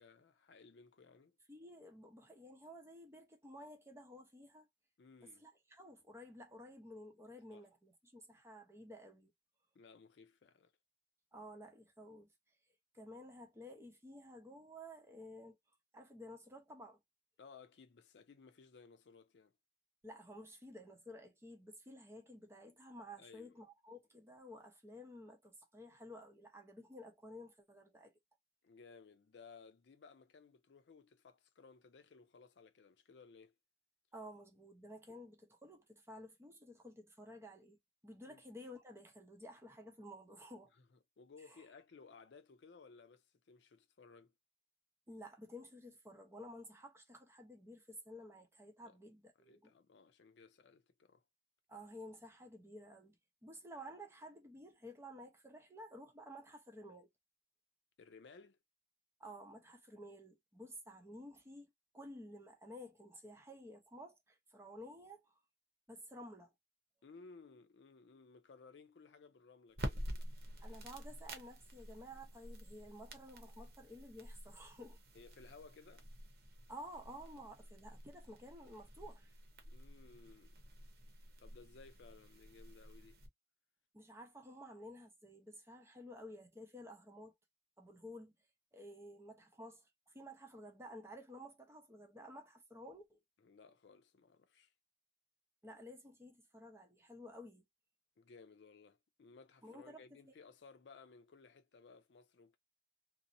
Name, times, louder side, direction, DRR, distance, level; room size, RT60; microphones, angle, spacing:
voice 1, 0.0-1.4 5.0-5.5 7.5-7.7 9.7-10.7 17.4-19.5 23.2-23.6 28.6-33.6 35.1-35.2 38.3-38.4 40.7-40.9 41.2-44.3 48.8-49.0 49.4-51.2 58.0-58.6 67.0-70.0 75.1-76.1 79.7-80.6 81.4-83.2 93.4-94.7 98.2-102.6, left 4 dB, 80° left, 0.5 m, -60 dB
voice 2, 1.5-4.7 5.2-9.3 11.3-12.3 12.9-15.6 15.9-17.0 20.0-28.1 34.1-37.8 38.0-40.7 41.5-41.6 45.1-49.7 51.7-57.1 59.2-65.4 65.9-66.5 70.6-75.0 76.7-79.3 83.9-87.3 87.8-88.3 88.7-93.2 95.6-97.6 99.6-100.3, equal, 15° right, 0.7 m, -53 dB
sound 1, 69.7-83.3, equal, 60° right, 0.7 m, -49 dB
2.7 x 2.0 x 2.5 m
head